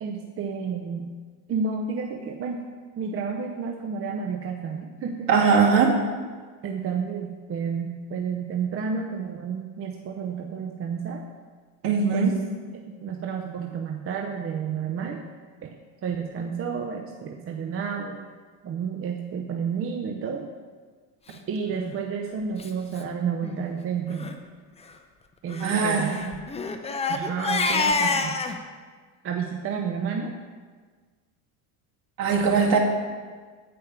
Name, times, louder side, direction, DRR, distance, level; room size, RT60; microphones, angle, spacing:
voice 1, 0.0-1.1 1.5-2.6 3.0-5.6 6.6-11.2 12.1-12.3 12.9-15.2 15.6-15.7 16.0-18.3 18.6-20.5 21.5-24.3 25.4-26.4 27.1-28.4 29.2-30.3 32.6-32.8, right 6 dB, 30° right, 2 dB, 0.7 m, -31 dB
voice 2, 5.3-6.0 11.8-12.4 25.6-26.2 32.2-32.8, right 5 dB, 55° right, -1 dB, 2.0 m, -20 dB
Crying sobbing, 21.7-21.9 22.6-22.7 23.0-23.1 23.4-23.6 24.1-24.3 25.5-28.6, left 4 dB, 15° left, 0.6 m, -27 dB
9.0 x 5.2 x 5.8 m, 1.5 s
supercardioid pair, 105°, 41 cm